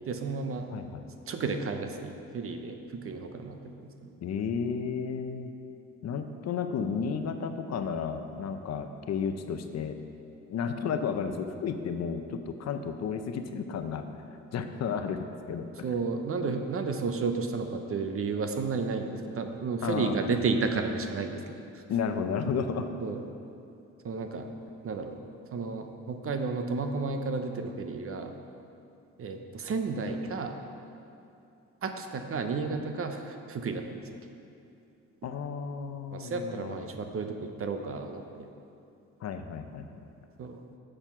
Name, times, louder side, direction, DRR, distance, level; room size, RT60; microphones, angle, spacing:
voice 1, 0.1-0.7 1.3-4.1 15.8-21.8 23.0-23.2 24.0-24.5 24.8-25.2 25.5-28.4 29.2-30.5 31.8-34.1 36.1-38.5 40.4-40.6, right 4 dB, 45° right, 6 dB, 0.8 m, -32 dB
voice 2, 0.7-1.0 4.2-5.5 6.0-10.0 10.5-14.1 14.5-15.7 19.8-20.1 21.9-22.9 35.2-36.9 39.2-39.9, left 6 dB, 60° left, 7 dB, 0.7 m, -32 dB
7.7 x 6.7 x 5.9 m, 2.6 s
cardioid pair, 90°, 30 cm